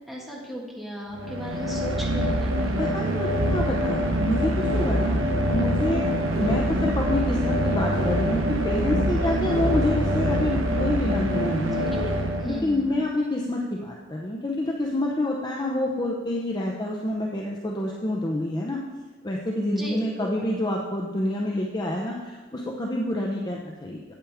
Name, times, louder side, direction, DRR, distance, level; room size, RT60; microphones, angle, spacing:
voice 1, 0.1-3.0 11.8-12.9 19.8-20.5, equal, ahead, -4 dB, 1.6 m, -36 dB
sound 1, 1.1-13.0, equal, 85° right, 0.8 m, -25 dB
voice 2, 2.8-5.2 5.5-6.0 6.4-11.8 12.5-18.8 19.2-24.1, left 1 dB, 20° left, -1 dB, 0.6 m, -27 dB
sound 2, 3.3-10.9, equal, 50° right, 3.0 m, -30 dB
8.9 x 8.3 x 3.5 m, 1.3 s
head